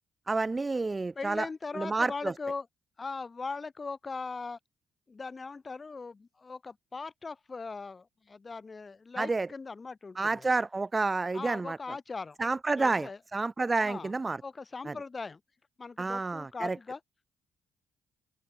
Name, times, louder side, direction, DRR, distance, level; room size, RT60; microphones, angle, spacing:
voice 1, 0.3-1.5 1.7-2.3 9.2-9.5 10.1-11.8 12.4-14.4 14.9-15.0 16.0-16.8, right 3 dB, 25° right, 1.2 m, -29 dB
voice 2, 1.1-2.7 3.0-4.6 5.1-10.5 11.3-12.4 12.8-13.2 13.8-14.1 14.4-15.4 15.8-17.0, left 4 dB, 30° left, 1.4 m, -39 dB
open air
hypercardioid pair, 45°, 0 cm